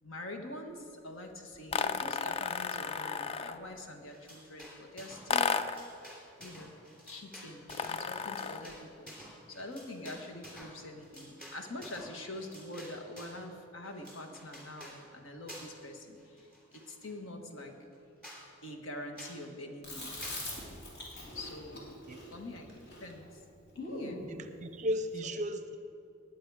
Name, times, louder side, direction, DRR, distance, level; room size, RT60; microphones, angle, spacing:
voice 1, 0.0-5.6 6.4-6.7 7.1-17.7 18.6-20.1 21.3-21.9 22.3-23.4 23.9-24.2 25.2-25.3, left 1 dB, 80° left, 4 dB, 1.5 m, -45 dB
sound 1, 1.7-3.7 5.3-5.9 7.7-8.7, left 6 dB, 30° left, 0.4 m, -33 dB
sound 2, 4.1-5.3 5.6-13.4 13.8-15.0 15.5-15.9 16.2-17.1 17.6-17.7 17.9-18.0 18.2-18.4 19.2-19.4 20.2-20.4, equal, 5° left, 2.8 m, -50 dB
Chewing mastication, 19.8-24.2, left 1 dB, 55° left, 3.0 m, -43 dB
voice 2, 24.3-25.8, equal, 35° right, 9 dB, 0.5 m, -35 dB
19.5 x 8.5 x 4.8 m, 2.6 s
head